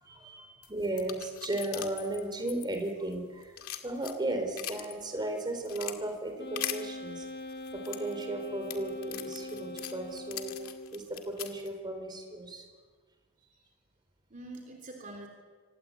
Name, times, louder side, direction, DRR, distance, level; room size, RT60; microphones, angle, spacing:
voice 1, 0.0-0.6 13.4-13.7 14.3-15.3, right 2 dB, 40° right, 2 dB, 3.4 m, -47 dB
sound 1, 0.6-3.1 3.4-4.9 5.4-6.0 6.6-6.8 7.5-11.7, left 12 dB, 75° left, 2.1 m, -40 dB
voice 2, 0.7-3.5 3.8-7.3 7.7-10.5 10.9-12.7, right 2 dB, 20° right, 5 dB, 4.2 m, -35 dB
Wind instrument woodwind instrument, 6.4-11.0, left 2 dB, 50° left, 1.6 m, -42 dB
25.5 x 19.0 x 8.5 m, 1.5 s
head